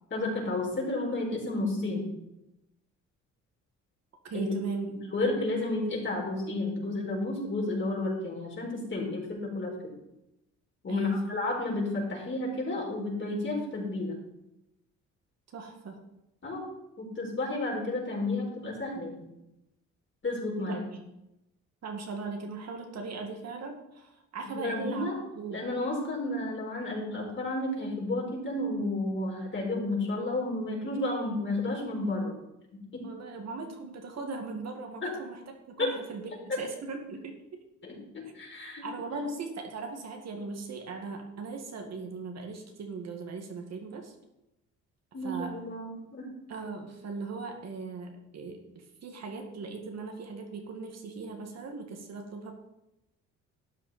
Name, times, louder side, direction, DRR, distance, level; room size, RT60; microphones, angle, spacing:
voice 1, 0.1-2.1 4.3-4.5 4.9-9.7 10.8-14.1 16.4-16.6 17.0-19.3 20.2-20.8 24.6-25.2 25.5-32.3 32.9-33.1 35.0-35.1 35.8-35.9 36.5-36.6 37.8-37.9 38.3-39.3 45.1-46.3, left 2 dB, 40° left, -2 dB, 4.5 m, -31 dB
voice 2, 4.2-4.9 10.9-11.3 15.5-16.1 20.7-21.0 21.8-25.1 25.3-25.6 33.0-35.4 35.8-37.6 38.8-44.1 45.2-45.6 46.5-52.5, right 4 dB, 60° right, 3 dB, 2.0 m, -39 dB
12.5 x 8.4 x 4.3 m, 0.89 s
cardioid pair, 90°, 30 cm